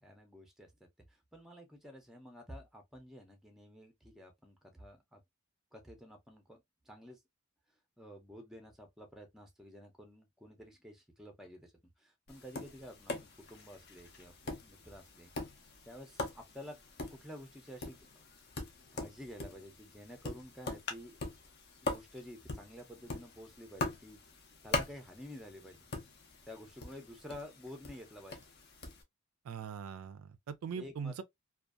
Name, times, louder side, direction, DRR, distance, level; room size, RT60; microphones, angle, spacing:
voice 1, 0.0-0.7 1.1-5.2 5.7-6.6 6.9-7.2 8.0-11.7 12.0-15.3 15.9-16.8 17.1-18.1 18.9-21.2 21.8-24.2 24.6-25.8 26.4-28.4 30.7-31.2, equal, ahead, 0.5 m, -51 dB
Tap, 12.3-29.0, left 3 dB, 45° left, 0.5 m, -43 dB
voice 2, 29.4-31.2, right 6 dB, 75° right, 0.3 m, -41 dB
2.5 x 2.3 x 2.3 m
head